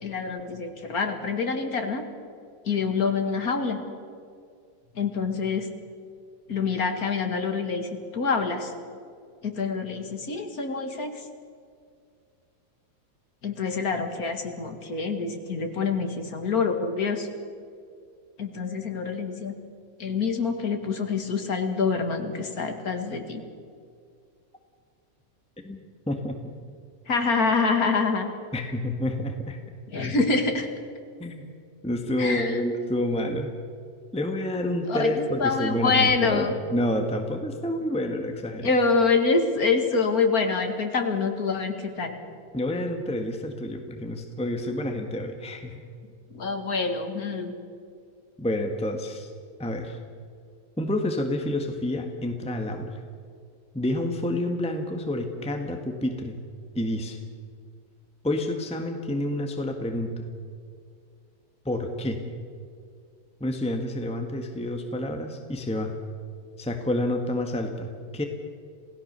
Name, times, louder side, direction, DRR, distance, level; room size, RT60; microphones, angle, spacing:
voice 1, 0.0-2.0 2.7-3.8 5.0-5.7 6.5-8.7 9.4-11.2 13.4-17.3 18.4-19.5 20.0-23.4 27.1-28.3 29.9-30.7 32.2-32.6 34.9-36.5 38.6-42.1 46.3-47.5, left 4 dB, 65° left, 5 dB, 2.6 m, -26 dB
voice 2, 26.1-26.5 28.5-29.6 31.2-31.5 31.8-33.5 34.1-38.7 42.5-45.9 48.4-49.3 49.6-50.0 50.8-53.0 53.7-56.4 56.7-57.2 58.2-60.3 61.6-62.2 63.4-65.9 66.6-68.2, left 1 dB, 5° left, 4 dB, 1.5 m, -29 dB
27.5 x 17.5 x 6.8 m, 2.2 s
omnidirectional pair, 1.7 m